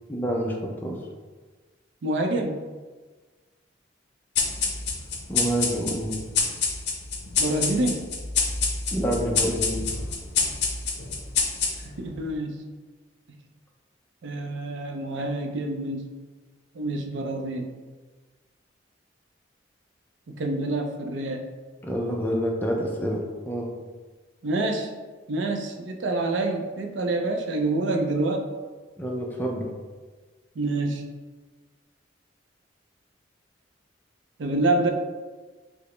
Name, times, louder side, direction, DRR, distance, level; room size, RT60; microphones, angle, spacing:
voice 1, 0.1-1.0 5.3-6.2 8.9-9.9 21.8-23.7 29.0-29.7, equal, 10° left, -1 dB, 0.4 m, -28 dB
voice 2, 2.0-2.6 7.4-8.1 11.8-12.6 14.2-16.1 16.7-17.7 20.3-21.5 24.4-24.9 25.3-28.5 30.6-31.0 34.4-34.9, right 2 dB, 75° right, 4 dB, 0.4 m, -27 dB
sound 1, 4.3-12.1, left 5 dB, 60° left, 0.6 m, -27 dB
4.8 x 2.0 x 3.1 m, 1.4 s
head